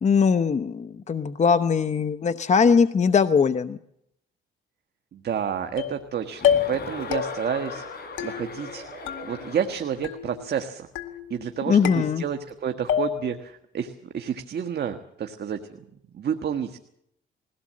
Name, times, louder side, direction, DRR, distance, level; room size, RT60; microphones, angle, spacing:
voice 1, 0.0-3.8 11.7-12.2, left 6 dB, 35° left, 11 dB, 0.8 m, -21 dB
voice 2, 5.1-8.8 9.2-10.9 11.3-15.6 16.1-16.8, right 8 dB, 55° right, 6 dB, 1.4 m, -30 dB
sound 1, 5.8-6.1 6.4-6.8 7.1-7.6 8.2-8.8 9.1-9.7 10.0-10.6 10.9-11.5 11.8-12.5 12.9-13.4, left 9 dB, 85° left, 2.0 m, -28 dB
Chuckle chortle, 6.3-10.1, left 3 dB, 50° left, 5.3 m, -38 dB
21.5 x 17.0 x 7.6 m, 0.76 s
cardioid pair, 90°, 20 cm